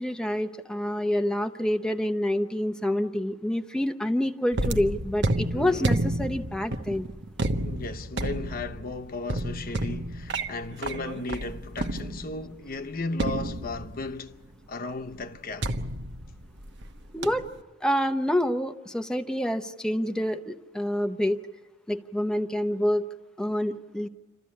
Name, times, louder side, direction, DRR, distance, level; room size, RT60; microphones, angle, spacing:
voice 1, 0.0-7.1 17.1-17.5 17.8-21.4 21.9-23.1 23.4-24.1, left 1 dB, 5° left, 0.8 m, -27 dB
sound 1, 4.5-12.5 13.2-14.2 15.6-16.9 17.2-17.6, right 1 dB, 65° right, 1.1 m, -30 dB
voice 2, 5.5-5.9 7.6-14.4 14.7-15.8, left 3 dB, 50° left, 0.8 m, -35 dB
28.5 x 13.5 x 8.6 m
head